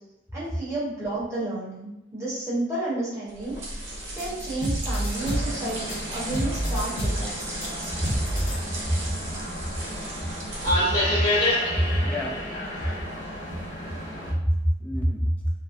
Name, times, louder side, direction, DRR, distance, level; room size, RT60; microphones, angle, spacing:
voice 1, 0.3-7.5, right 2 dB, 15° right, -9 dB, 1.0 m, -31 dB
sound 1, 3.3-11.1, right 1 dB, 85° right, 0.6 m, -36 dB
sound 2, 4.2-8.6, equal, 85° left, 0.7 m, -28 dB
sound 3, 5.1-14.3, left 1 dB, 50° left, 1.2 m, -30 dB
voice 2, 11.7-12.4 12.8-12.9 14.3-15.5, equal, 10° left, -4 dB, 0.3 m, -25 dB
2.5 x 2.1 x 2.4 m, 0.89 s
head